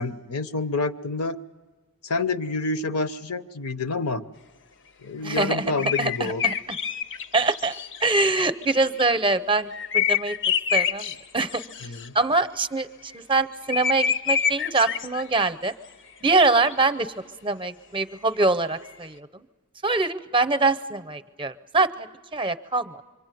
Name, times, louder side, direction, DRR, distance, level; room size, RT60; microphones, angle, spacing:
voice 1, 0.0-1.4 2.0-4.2 5.0-6.4 11.8-12.1, left 3 dB, 75° left, 12 dB, 1.0 m, -28 dB
voice 2, 5.2-6.5 7.3-7.8 8.0-10.4 10.7-11.6 12.1-15.7 16.2-17.1 17.4-19.5 19.8-22.1 22.3-23.0, right 3 dB, 25° right, 14 dB, 0.8 m, -24 dB
sound 1, 5.8-9.0 9.7-12.1 13.7-15.4 15.9-16.0 16.3-16.8 18.9-19.0, left 7 dB, 55° left, 0.8 m, -27 dB
26.0 x 24.5 x 9.3 m, 1.3 s
head